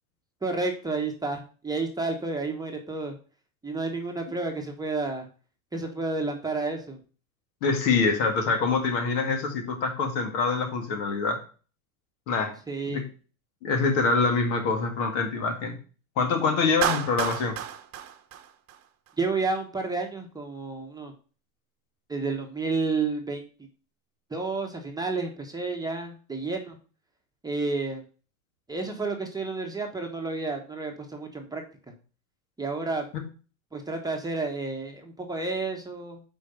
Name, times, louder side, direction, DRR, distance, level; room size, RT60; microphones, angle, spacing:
voice 1, 0.4-3.1 3.6-5.3 5.7-7.0 12.7-13.0 19.2-21.1 22.1-23.4 24.3-26.8 27.4-28.0 28.7-31.6 32.6-33.1 33.7-36.2, right 3 dB, 10° right, 2 dB, 1.1 m, -30 dB
voice 2, 7.6-11.4 12.3-12.5 12.9-13.0 13.6-15.7 16.2-17.6 33.1-33.2, left 4 dB, 65° left, 4 dB, 1.9 m, -25 dB
Clapping, 16.8-19.1, right 10 dB, 40° right, 1.0 m, -31 dB
5.3 x 4.6 x 5.3 m, 0.38 s
hypercardioid pair, 110°, 43 cm